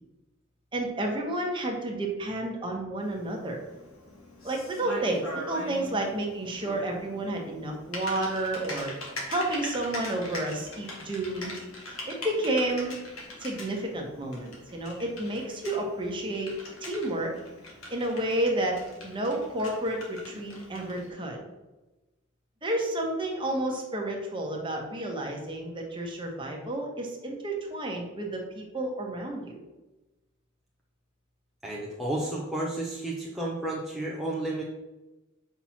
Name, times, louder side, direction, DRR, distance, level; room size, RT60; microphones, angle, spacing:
voice 1, 0.7-3.6 4.4-8.9 9.3-11.5 12.1-12.9 13.4-16.5 16.8-17.3 17.9-18.8 19.0-21.4 22.6-29.6, right 1 dB, 25° right, 0 dB, 1.2 m, -31 dB
Typing, 3.0-21.1, left 1 dB, 90° left, 2.0 m, -42 dB
voice 2, 31.6-34.6, right 1 dB, ahead, -4 dB, 0.7 m, -32 dB
5.8 x 4.4 x 5.9 m, 1.1 s
head